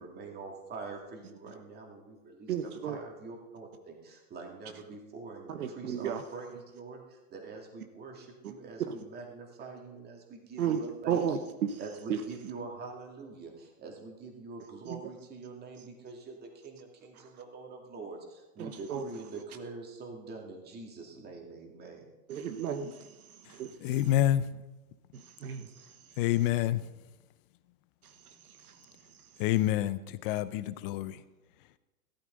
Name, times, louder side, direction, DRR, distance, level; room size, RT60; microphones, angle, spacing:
voice 1, 0.0-11.4 11.8-22.1, right 3 dB, 20° right, 2.3 m, -45 dB
voice 2, 2.5-3.0 5.5-6.2 10.6-10.8 11.1-11.4 12.1-12.2 14.9-15.0 18.6-19.0 22.3-23.0 23.5-23.7 25.1-25.7 28.6-28.7, right 8 dB, 80° right, 1.1 m, -33 dB
voice 3, 23.8-24.5 26.2-26.8 29.4-31.2, left 13 dB, 40° left, 0.6 m, -28 dB
14.5 x 12.5 x 3.9 m
hypercardioid pair, 130°, 43 cm